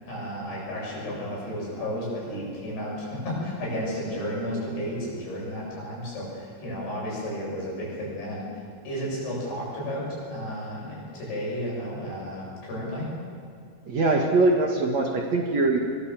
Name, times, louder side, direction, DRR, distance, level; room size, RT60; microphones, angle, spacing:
voice 1, 0.0-8.5 8.8-13.1, equal, 80° left, -4 dB, 10.0 m, -32 dB
voice 2, 13.9-15.8, right 3 dB, 50° right, 1 dB, 2.5 m, -22 dB
24.0 x 23.0 x 7.5 m, 2.2 s
omnidirectional pair, 4.7 m